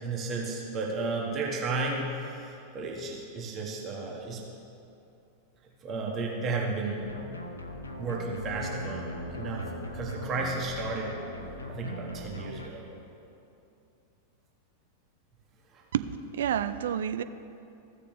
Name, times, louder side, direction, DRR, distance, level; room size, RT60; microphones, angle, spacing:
voice 1, 0.0-4.4 5.8-7.1 8.0-11.2 11.7-12.8 15.7-15.8, right 3 dB, 30° right, -1 dB, 1.3 m, -33 dB
sound 1, 7.0-12.7, left 1 dB, 80° left, 0.7 m, -39 dB
voice 2, 15.9-17.2, right 9 dB, 60° right, 12 dB, 0.3 m, -29 dB
15.0 x 6.6 x 3.2 m, 2.7 s
figure-of-eight pair, 90°, 0 cm